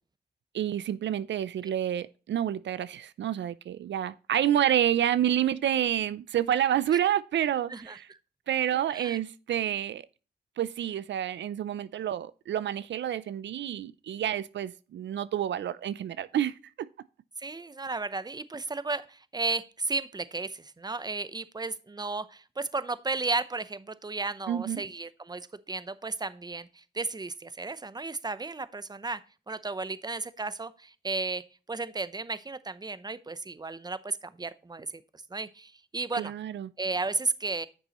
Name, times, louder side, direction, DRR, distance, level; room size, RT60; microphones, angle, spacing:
voice 1, 0.5-8.1 8.5-10.0 10.6-16.9 24.5-24.8 36.1-36.7, right 10 dB, 80° right, 0.4 m, -29 dB
voice 2, 7.7-8.2 8.9-9.2 17.4-31.4 31.7-35.0 35.3-36.3 36.8-37.7, right 3 dB, 20° right, 0.7 m, -34 dB
10.0 x 6.7 x 3.0 m
cardioid pair, 55°, 19 cm